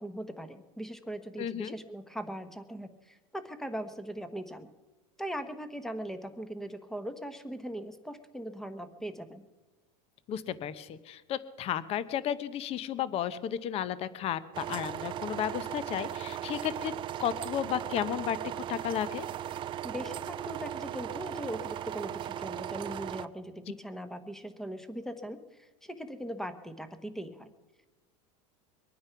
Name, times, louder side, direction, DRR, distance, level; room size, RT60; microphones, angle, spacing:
voice 1, 0.0-4.7 5.2-9.4 19.8-27.5, right 1 dB, ahead, 10 dB, 1.0 m, -40 dB
voice 2, 1.4-1.7 10.3-16.9 17.2-19.3, left 10 dB, 35° left, 16 dB, 0.8 m, -33 dB
sound 1, 14.5-23.3, right 11 dB, 25° right, 0.4 m, -37 dB
23.0 x 9.5 x 5.8 m, 1.2 s
supercardioid pair, 145°, 18 cm